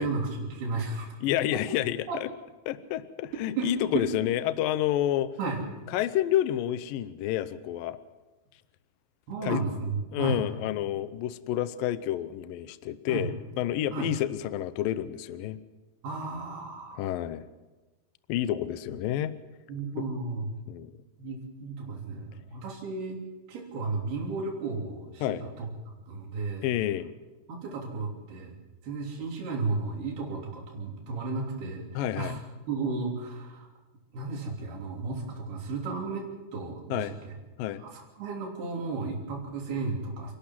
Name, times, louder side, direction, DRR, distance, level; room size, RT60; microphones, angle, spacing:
voice 1, 0.0-1.1 2.1-2.2 3.6-4.1 5.4-5.6 9.3-10.4 13.1-13.3 13.9-14.1 16.0-17.0 19.7-20.5 21.2-23.2 23.5-25.7 26.1-26.7 27.5-28.5 28.8-32.4 32.7-33.7 34.1-36.2 36.5-37.3 37.8-40.3, right 4 dB, 75° right, 0 dB, 5.3 m, -33 dB
voice 2, 1.2-2.3 2.7-5.3 5.9-8.0 9.4-9.6 10.1-15.6 17.0-17.5 18.3-19.3 20.0-20.1 20.7-20.9 25.2-25.4 26.6-27.1 31.9-32.4 36.9-37.2 37.6-37.8, left 12 dB, 75° left, 13 dB, 2.3 m, -29 dB
29.5 x 12.0 x 7.5 m, 1.2 s
omnidirectional pair, 4.6 m